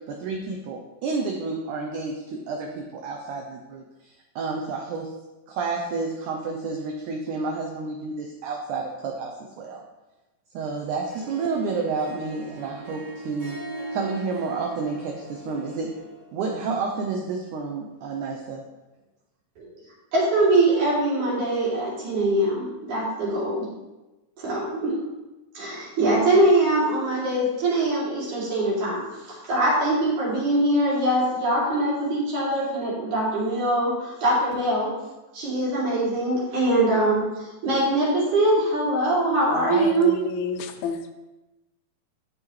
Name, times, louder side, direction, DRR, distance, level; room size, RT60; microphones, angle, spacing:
voice 1, 0.1-5.1 5.5-9.8 10.5-13.6 13.9-15.9 16.3-18.7, right 4 dB, 80° right, 2 dB, 1.8 m, -30 dB
Harp, 10.9-16.3, right 1 dB, 30° right, 2.9 m, -40 dB
voice 2, 20.1-23.7 24.4-24.9 25.5-29.0 29.3-34.9 35.3-40.1, right 1 dB, 55° right, -7 dB, 4.0 m, -22 dB
voice 3, 39.5-41.1, left 6 dB, 80° left, 8 dB, 2.4 m, -30 dB
12.0 x 5.9 x 3.1 m, 1.1 s
omnidirectional pair, 4.3 m